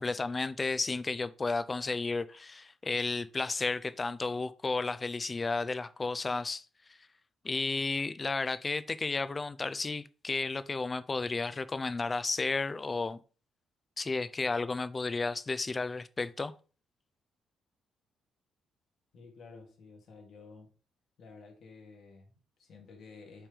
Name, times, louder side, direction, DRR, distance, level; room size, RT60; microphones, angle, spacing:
voice 1, 0.0-6.6 7.4-13.2 14.0-16.5, left 3 dB, 30° left, 0.5 m, -33 dB
voice 2, 19.1-20.7 21.2-23.5, left 4 dB, 60° left, 2.1 m, -52 dB
5.8 x 3.4 x 5.3 m
cardioid pair, 90°, 0 cm